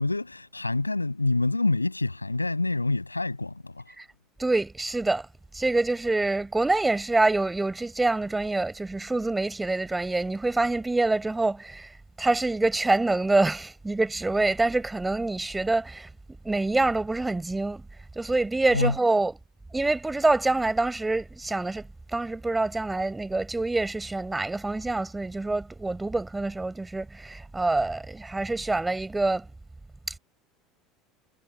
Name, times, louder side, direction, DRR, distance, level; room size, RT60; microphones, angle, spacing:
voice 1, 0.0-3.8 18.7-19.0, left 2 dB, 90° left, 7.4 m, -26 dB
voice 2, 4.4-5.3 5.5-11.9 12.2-16.1 16.4-17.8 18.1-19.3 19.7-29.5, right 2 dB, 10° right, 6.6 m, -26 dB
figure-of-eight pair, 70°, 0 cm